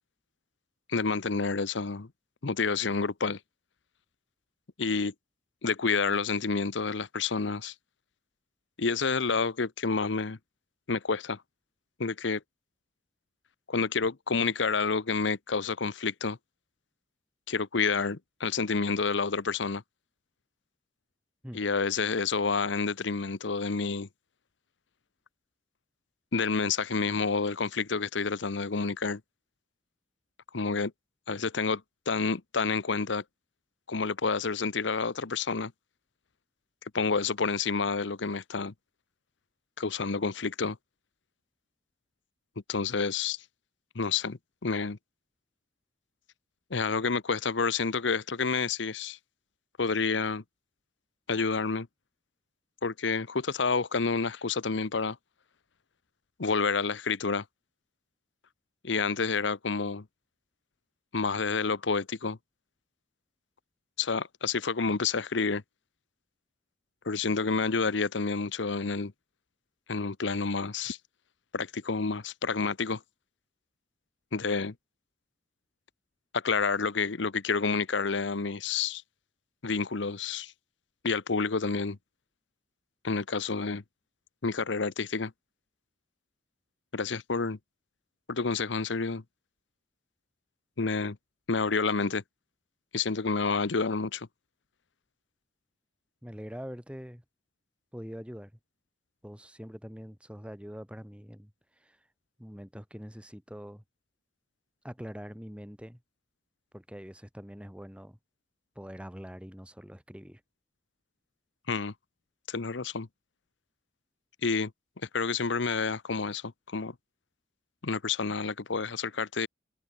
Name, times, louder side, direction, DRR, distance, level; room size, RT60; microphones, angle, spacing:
voice 1, 0.9-2.1 2.4-3.4 4.8-5.1 5.6-7.7 8.8-10.4 10.9-11.4 12.0-12.4 13.7-16.4 17.5-19.8 21.5-24.1 26.3-29.2 30.5-30.9 31.3-33.2 33.9-35.7 36.9-38.7 39.8-40.8 42.7-43.4 43.9-45.0 46.7-49.2 49.8-50.4 51.3-51.9 52.8-55.2 56.4-57.4 58.8-60.0 61.1-62.4 64.0-65.6 67.0-69.1 69.9-71.0 71.5-73.0 74.3-74.7 76.3-79.0 79.6-80.5 81.0-82.0 83.0-83.8 84.4-85.3 86.9-87.6 88.3-89.2 90.8-91.2 91.5-92.2 92.9-94.3 111.7-111.9 112.5-113.1 114.4-114.7 115.1-116.9 117.8-119.5, left 4 dB, 65° left, 0.9 m, -29 dB
voice 2, 96.2-97.2 97.9-98.5 99.2-101.5 101.8-102.0 102.4-103.8 104.8-106.0 106.7-108.2 108.8-110.4, equal, 5° right, 4.3 m, -44 dB
head